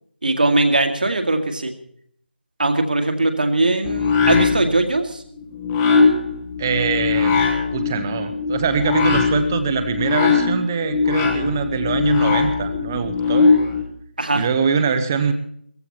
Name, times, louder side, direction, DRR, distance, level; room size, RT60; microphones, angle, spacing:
voice 1, 0.2-1.7 2.6-5.2 14.2-14.4, right 2 dB, 55° right, 6 dB, 2.1 m, -20 dB
sound 1, 3.8-13.8, left 5 dB, 10° left, 1.2 m, -20 dB
voice 2, 6.6-7.4 7.7-13.5 14.3-15.3, right 6 dB, 15° right, 9 dB, 1.0 m, -23 dB
18.0 x 15.0 x 4.3 m, 0.65 s
figure-of-eight pair, 160°, 6 cm